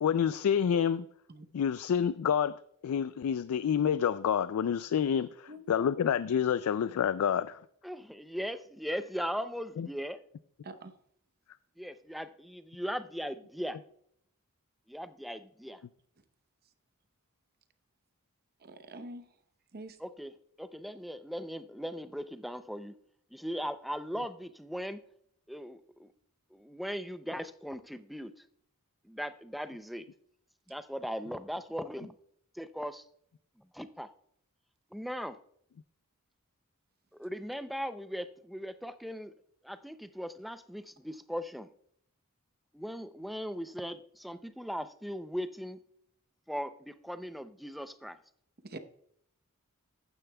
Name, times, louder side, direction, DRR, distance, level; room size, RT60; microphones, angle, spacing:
voice 1, 0.0-1.1 1.5-7.6 9.8-9.9, left 8 dB, 70° left, 0.3 m, -28 dB
voice 2, 5.5-5.9 10.6-10.9 18.7-19.2 19.7-19.9 48.7-48.8, right 1 dB, 45° right, 0.8 m, -44 dB
voice 3, 7.8-10.2 11.8-13.8 14.9-15.8 20.0-23.0 23.3-25.0 25.5-26.1 26.5-28.4 29.0-30.1 30.7-32.2 32.5-33.0 33.7-34.1 34.9-35.4 37.2-39.3 39.6-41.7 42.7-45.8 46.5-48.2, equal, ahead, 0.4 m, -38 dB
14.5 x 9.3 x 2.2 m
head